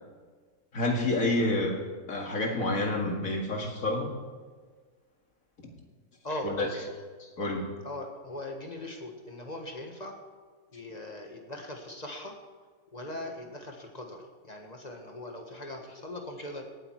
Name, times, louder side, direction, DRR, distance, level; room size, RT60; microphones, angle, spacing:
voice 1, 0.7-1.8 2.1-4.1 6.4-6.7 7.2-7.7, left 2 dB, 75° left, 1 dB, 2.4 m, -28 dB
voice 2, 6.2-6.9 7.4-7.5 7.8-10.2 10.7-12.4 12.9-16.6, left 1 dB, 30° left, 2 dB, 1.5 m, -40 dB
17.5 x 8.9 x 4.6 m, 1.5 s
omnidirectional pair, 1.4 m